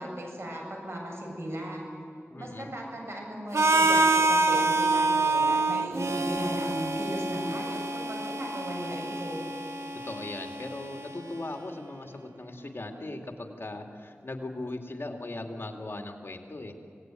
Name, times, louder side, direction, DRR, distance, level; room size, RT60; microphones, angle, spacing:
voice 1, 0.0-1.8 2.4-9.4, equal, 60° right, 0 dB, 7.5 m, -36 dB
voice 2, 2.3-2.7 10.0-16.8, left 2 dB, 55° left, 3 dB, 2.6 m, -38 dB
Harmonica, 3.5-11.4, right 3 dB, 80° right, 1.4 m, -27 dB
26.0 x 18.5 x 9.3 m, 2.5 s
wide cardioid pair, 65°, 5 cm